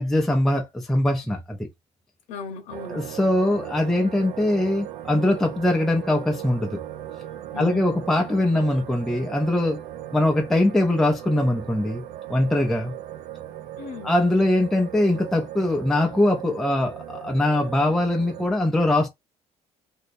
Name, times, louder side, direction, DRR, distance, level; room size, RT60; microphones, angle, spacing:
voice 1, 0.0-1.6 2.9-6.8 7.6-9.8 10.1-12.0 12.3-12.9 14.0-19.1, left 1 dB, 5° left, 0.4 m, -22 dB
voice 2, 2.3-3.0 7.5-8.1 13.8-14.1, left 3 dB, 85° left, 0.7 m, -37 dB
sound 1, 2.7-18.5, right 12 dB, 75° right, 0.4 m, -38 dB
2.7 x 2.1 x 3.9 m
cardioid pair, 175°, 12 cm